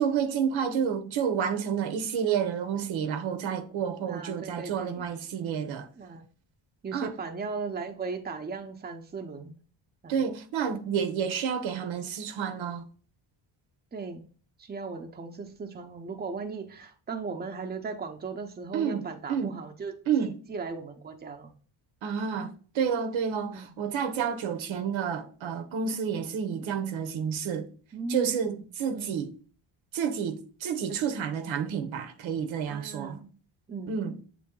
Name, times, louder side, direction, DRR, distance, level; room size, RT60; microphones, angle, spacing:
voice 1, 0.0-5.9 6.9-7.1 10.1-12.8 18.7-19.6 20.1-20.4 22.0-27.7 28.1-29.3 29.9-33.2 33.9-34.2, right 7 dB, 85° right, 1.0 m, -30 dB
voice 2, 4.1-5.0 6.0-6.2 6.8-9.6 10.0-10.2 13.9-14.2 14.6-21.5 23.5-23.7 26.8-27.0 27.9-28.7 28.9-29.3 30.9-31.0 32.7-33.3 33.7-33.9, right 4 dB, 20° right, 0.8 m, -37 dB
7.5 x 3.4 x 3.8 m
cardioid pair, 140°, 47 cm